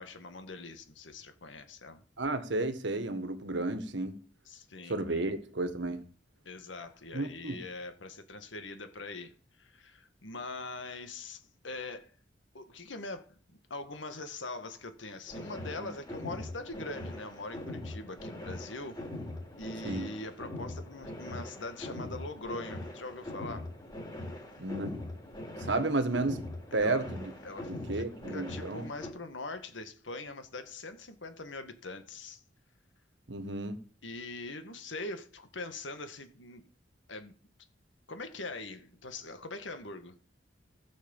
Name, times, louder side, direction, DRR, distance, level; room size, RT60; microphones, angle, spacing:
voice 1, 0.0-2.0 4.5-5.2 6.5-12.1 12.5-19.0 19.6-23.7 26.7-27.0 27.4-32.4 34.0-36.6 37.1-37.3 38.1-40.2, left 2 dB, 90° left, 1.8 m, -42 dB
voice 2, 2.2-4.2 4.9-6.0 7.1-7.6 15.8-15.9 19.8-20.1 24.6-25.0 25.6-26.4 26.7-27.3 27.9-28.9 33.3-33.8, right 2 dB, 75° right, 1.6 m, -32 dB
sound 1, 15.3-29.1, left 1 dB, 25° left, 3.7 m, -42 dB
15.5 x 6.4 x 7.2 m
head